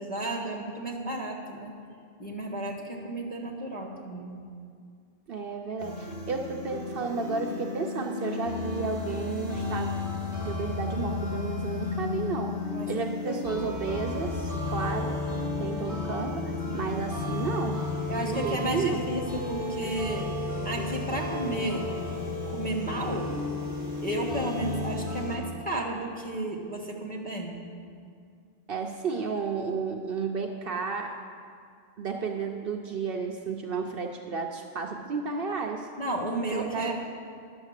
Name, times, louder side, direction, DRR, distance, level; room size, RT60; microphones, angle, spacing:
voice 1, 0.0-1.7 2.2-4.4 12.7-13.6 16.6-16.9 18.1-20.4 20.6-21.9 22.5-23.3 24.0-27.6 36.0-36.9, right 1 dB, 10° left, -3 dB, 1.4 m, -33 dB
voice 2, 5.3-9.9 10.4-12.5 12.9-15.2 15.6-17.8 18.1-19.0 28.7-31.1 32.0-35.9 36.5-36.9, right 5 dB, 60° right, 2 dB, 0.8 m, -32 dB
sound 1, 5.8-25.4, left 3 dB, 85° left, 2.7 m, -33 dB
10.5 x 7.1 x 6.5 m, 2.2 s
omnidirectional pair, 1.1 m